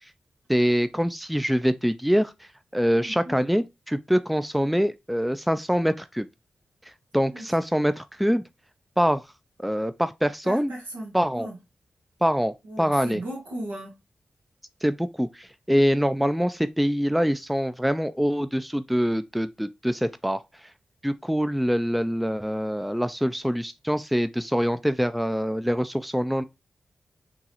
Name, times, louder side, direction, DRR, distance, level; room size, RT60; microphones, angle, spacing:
voice 1, 0.5-2.3 2.7-6.3 7.1-8.4 9.0-9.2 9.6-10.7 11.1-11.5 12.2-13.2 14.8-20.4 21.0-26.4, equal, ahead, 0.3 m, -24 dB
voice 2, 3.0-3.4 7.3-7.4 10.4-11.6 12.6-13.9, right 1 dB, 85° right, 1.7 m, -36 dB
3.6 x 3.0 x 2.9 m
cardioid pair, 40°, 3 cm